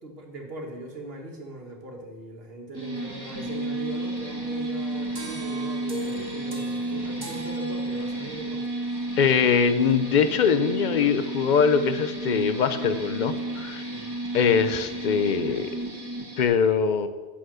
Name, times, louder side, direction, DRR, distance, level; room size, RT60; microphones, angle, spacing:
voice 1, 0.0-8.7 13.9-14.2, right 1 dB, 70° right, 2 dB, 1.8 m, -39 dB
sound 1, 2.7-16.4, right 2 dB, 25° right, 1.6 m, -32 dB
sound 2, 5.2-8.4, equal, 45° right, 1.8 m, -40 dB
voice 2, 9.2-13.8 14.3-15.7 16.4-17.1, left 6 dB, 55° left, 11 dB, 0.7 m, -22 dB
9.0 x 7.1 x 6.2 m, 1.3 s
omnidirectional pair, 1.0 m